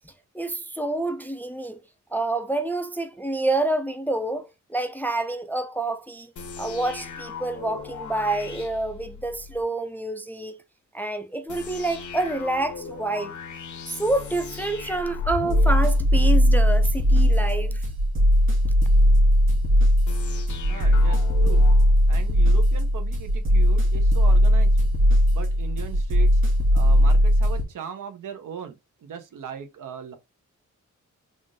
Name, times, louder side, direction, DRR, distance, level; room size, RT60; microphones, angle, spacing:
voice 1, 0.3-1.8 2.1-6.3 6.6-10.6 10.9-13.3 13.9-17.8, right 2 dB, 5° left, 0.3 m, -28 dB
sound 1, 6.4-9.6 11.5-16.7 20.1-22.7, left 5 dB, 65° left, 0.7 m, -38 dB
sound 2, 15.5-27.6, equal, 40° right, 1.7 m, -19 dB
voice 2, 20.7-21.6 22.1-24.8 25.0-26.4 26.7-30.1, right 8 dB, 80° right, 0.9 m, -38 dB
3.6 x 2.5 x 3.7 m
wide cardioid pair, 155°, 31 cm